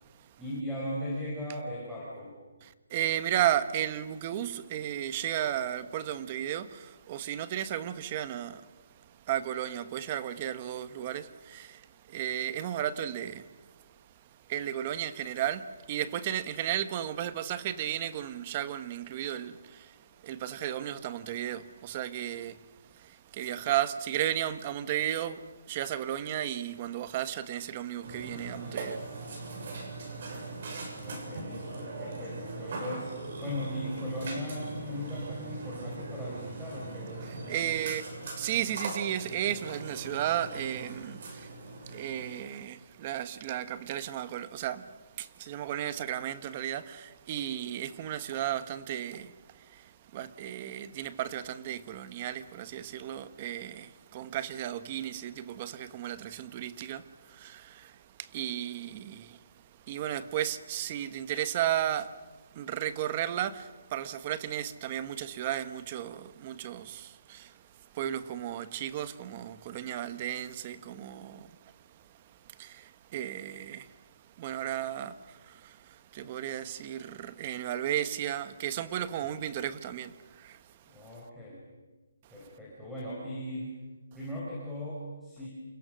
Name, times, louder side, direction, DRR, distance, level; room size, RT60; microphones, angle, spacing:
voice 1, 0.4-2.3 30.9-37.7 79.2-79.4 80.8-81.6 82.3-83.8 84.1-85.5, equal, ahead, 5.1 m, -38 dB
voice 2, 2.6-14.0 14.4-29.7 30.0-31.0 37.3-81.1, right 11 dB, 20° right, 1.1 m, -34 dB
Burping eructation, 28.0-42.4, right 3 dB, 40° right, 7.4 m, -40 dB
30.0 x 29.0 x 6.4 m
hypercardioid pair, 175°, 0 cm